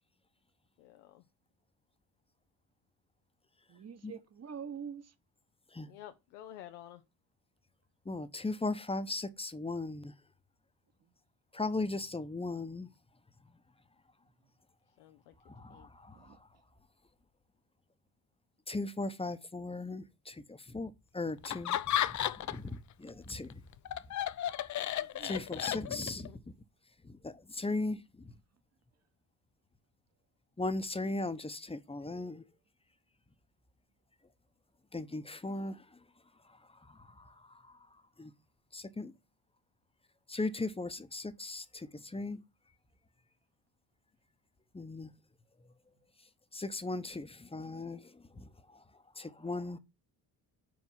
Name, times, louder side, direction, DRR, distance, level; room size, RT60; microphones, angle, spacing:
voice 1, 0.8-1.2 5.9-7.0 15.0-15.3 15.7-15.9 26.3-26.4, left 12 dB, 90° left, 0.7 m, -51 dB
voice 2, 3.7-5.1 16.1-16.4 25.0-25.3, right 7 dB, 35° right, 1.0 m, -45 dB
voice 3, 8.1-10.1 11.5-12.9 15.5-16.4 18.7-21.8 22.0-22.8 23.0-23.5 25.2-26.3 27.0-28.3 30.6-32.4 34.9-36.0 36.7-37.8 38.2-38.3 38.7-39.1 40.3-42.4 44.7-45.1 46.5-48.8 49.2-49.8, left 2 dB, 15° left, 0.8 m, -38 dB
Laughter, 21.4-22.7 23.1-26.3, left 11 dB, 40° left, 0.5 m, -33 dB
4.7 x 4.7 x 5.5 m
hypercardioid pair, 60°, 45 cm